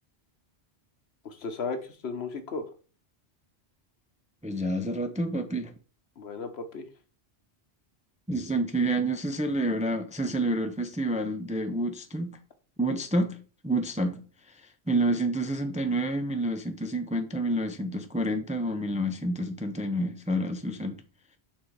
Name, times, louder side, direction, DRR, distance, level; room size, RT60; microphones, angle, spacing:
voice 1, 1.2-2.7 6.2-6.9, left 4 dB, 75° left, 1.2 m, -35 dB
voice 2, 4.4-5.7 8.3-12.4 12.8-14.2 14.9-21.0, right 1 dB, 10° right, 0.4 m, -28 dB
6.1 x 4.0 x 4.7 m
omnidirectional pair, 1.1 m